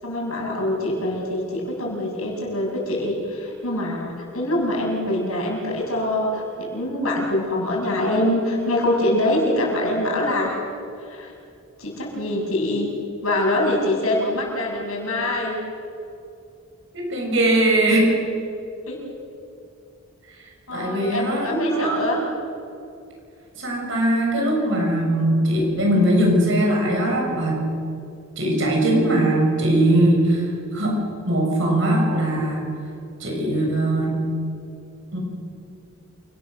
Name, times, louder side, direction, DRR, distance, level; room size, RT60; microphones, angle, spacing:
voice 1, 0.0-10.6 11.0-11.3 11.8-12.9 13.2-15.6 18.9-19.0 20.7-22.2, left 1 dB, 90° left, -1 dB, 6.8 m, -24 dB
voice 2, 16.9-18.1 20.7-22.1 23.6-27.7 28.4-32.7 33.2-34.2 35.1-35.2, right 1 dB, 60° right, 0 dB, 7.0 m, -20 dB
28.5 x 19.0 x 6.7 m, 2.6 s
head